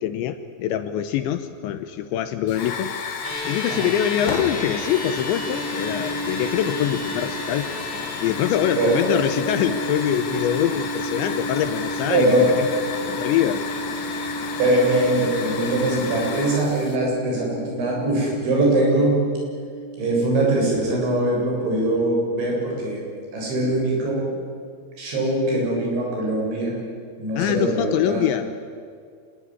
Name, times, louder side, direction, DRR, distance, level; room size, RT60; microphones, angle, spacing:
voice 1, 0.0-2.9 3.5-7.7 8.2-12.7 13.1-13.7 27.4-28.6, left 10 dB, 75° left, 10 dB, 2.9 m, -24 dB
Hiss / Fire, 2.5-17.0, left 5 dB, 55° left, 2.0 m, -32 dB
sound 1, 3.2-21.8, right 1 dB, 35° right, 6.0 m, -33 dB
voice 2, 12.1-12.5 14.6-19.1 20.0-23.0 23.3-24.3 25.0-26.8 27.2-28.2, right 1 dB, 65° right, -2 dB, 9.8 m, -22 dB
26.5 x 21.0 x 9.8 m, 2.2 s
omnidirectional pair, 5.8 m